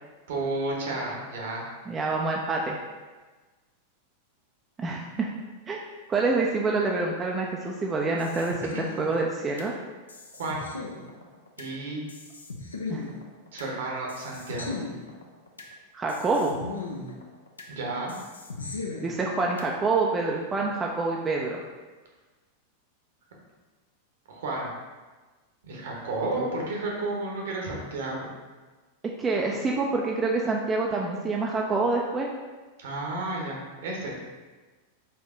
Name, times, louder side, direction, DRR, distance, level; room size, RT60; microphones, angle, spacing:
voice 1, 0.3-1.7 8.7-8.9 10.4-10.6 11.6-12.0 13.5-14.8 17.7-18.2 24.3-24.7 25.6-28.3 32.8-34.1, right 2 dB, 60° right, -1 dB, 1.0 m, -32 dB
voice 2, 1.9-2.8 4.8-5.3 5.7-5.8 6.1-9.7 12.9-13.0 15.9-16.5 19.0-21.6 26.4-26.5 29.2-32.3, right 3 dB, 20° right, -1 dB, 0.4 m, -27 dB
sound 1, 8.2-9.7 10.1-11.7 12.1-13.7 14.1-15.7 16.1-17.7 18.1-19.7, left 3 dB, 75° left, 0.5 m, -38 dB
4.4 x 2.7 x 3.6 m, 1.3 s
figure-of-eight pair, 90°, 0 cm